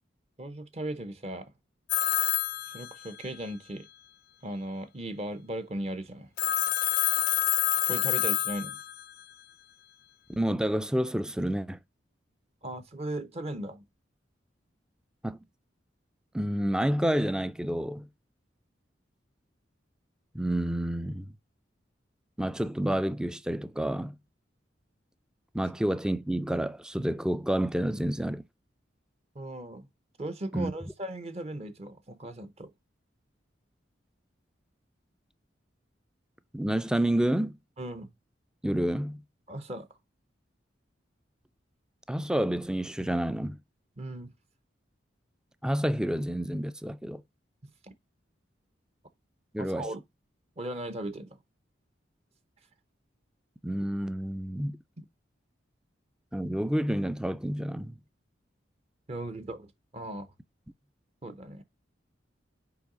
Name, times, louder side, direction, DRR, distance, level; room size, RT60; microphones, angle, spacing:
voice 1, 0.4-1.5 2.7-3.9 4.4-6.3 7.9-8.8 12.6-13.8 29.3-29.9 30.2-32.7 37.8-38.1 39.5-39.9 44.0-44.3 47.8-47.9 49.6-50.0 50.6-51.4 55.0-55.1 59.1-60.3 61.2-61.6, right 1 dB, 35° right, 0.7 m, -37 dB
Telephone, 1.9-3.4 6.4-9.2, left 13 dB, 55° left, 0.5 m, -28 dB
voice 2, 10.4-11.8 15.2-15.4 16.3-18.1 20.3-21.3 22.4-24.2 25.5-28.4 30.5-30.7 36.5-37.5 38.6-39.2 42.1-43.6 45.6-47.2 49.5-49.9 53.6-54.8 56.3-58.0, right 1 dB, 5° right, 0.3 m, -29 dB
5.8 x 4.7 x 3.7 m
head